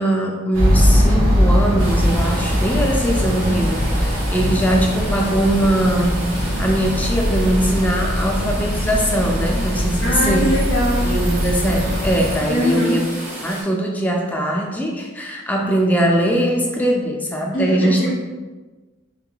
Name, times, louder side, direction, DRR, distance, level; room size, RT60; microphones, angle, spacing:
voice 1, 0.0-6.3 6.6-10.5 11.0-13.0 13.4-18.0, right 1 dB, 10° left, 0 dB, 0.4 m, -21 dB
sound 1, 0.5-12.4, equal, 85° right, 1.0 m, -20 dB
sound 2, 1.8-13.6, right 1 dB, 35° right, 1.2 m, -33 dB
voice 2, 10.0-11.1 12.5-13.0 17.5-18.1, equal, 90° left, -9 dB, 0.8 m, -21 dB
3.7 x 3.6 x 2.2 m, 1.2 s
head